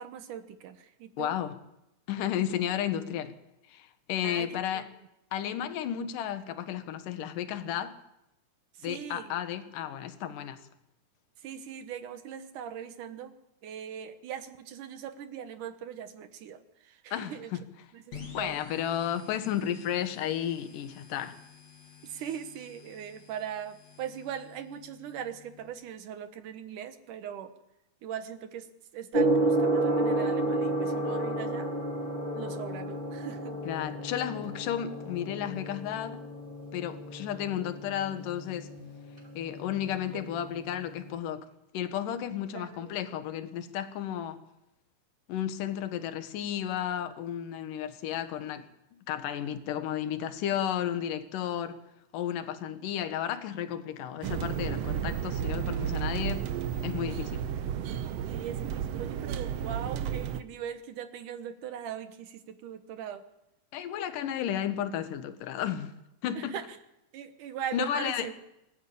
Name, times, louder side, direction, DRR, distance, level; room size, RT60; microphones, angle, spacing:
voice 1, 0.0-1.4 4.2-4.5 4.7-4.9 8.7-9.4 11.4-13.3 13.6-17.5 17.9-18.9 22.0-27.5 28.0-28.7 28.9-31.7 32.3-33.6 40.0-40.3 42.5-43.2 58.3-63.2 66.4-66.8 67.1-68.3, right 9 dB, 65° right, 2.5 m, -40 dB
voice 2, 1.2-1.5 2.1-3.3 3.7-4.9 5.3-8.0 8.8-10.6 17.1-17.6 18.3-21.4 33.7-36.2 36.7-38.7 39.4-41.5 41.7-44.4 45.3-48.7 49.1-51.8 52.1-56.5 56.8-57.4 63.7-66.0 66.2-66.5 67.7-68.3, left 10 dB, 70° left, 2.8 m, -33 dB
sound 1, 18.1-25.7, left 7 dB, 50° left, 4.1 m, -51 dB
Gong, 29.1-41.1, right 2 dB, 15° right, 4.1 m, -32 dB
sound 2, 54.2-60.4, right 9 dB, 90° right, 1.4 m, -32 dB
24.0 x 13.5 x 8.6 m
omnidirectional pair, 4.1 m